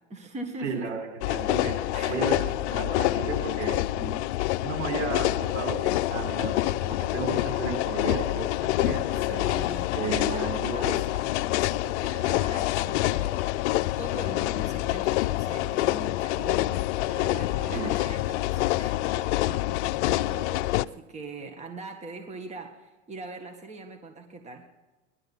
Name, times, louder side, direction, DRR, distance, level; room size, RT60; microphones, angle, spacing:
voice 1, 0.0-0.9 1.9-2.3 9.3-13.4 14.0-24.7, right 2 dB, 20° right, 4 dB, 1.7 m, -41 dB
voice 2, 0.6-4.3 4.6-9.4 9.9-11.0 17.7-17.9, right 5 dB, 75° right, 2 dB, 4.7 m, -34 dB
sound 1, 1.2-20.9, left 17 dB, 70° left, 0.6 m, -27 dB
19.5 x 12.0 x 5.5 m, 1.1 s
hypercardioid pair, 110°, 36 cm